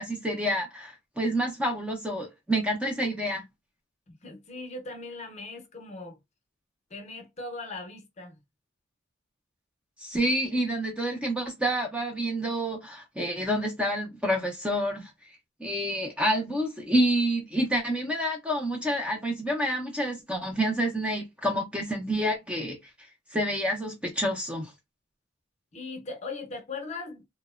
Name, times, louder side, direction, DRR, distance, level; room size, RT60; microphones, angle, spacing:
voice 1, 0.0-3.4 10.0-15.1 15.6-22.8 23.3-24.7, equal, 5° right, 0.5 m, -28 dB
voice 2, 4.1-6.2 6.9-8.4 25.7-27.2, left 3 dB, 35° left, 0.7 m, -39 dB
2.8 x 2.1 x 2.3 m
head